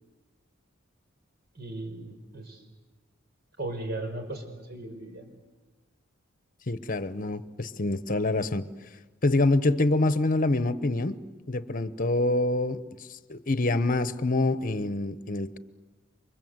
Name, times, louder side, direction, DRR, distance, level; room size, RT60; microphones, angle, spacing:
voice 1, 1.5-2.6 3.6-5.3, right 2 dB, 50° right, 6 dB, 5.0 m, -37 dB
voice 2, 6.7-8.6 9.2-11.2 11.5-12.8 13.1-15.6, left 2 dB, 45° left, 13 dB, 1.1 m, -26 dB
29.5 x 25.0 x 8.0 m, 1.2 s
head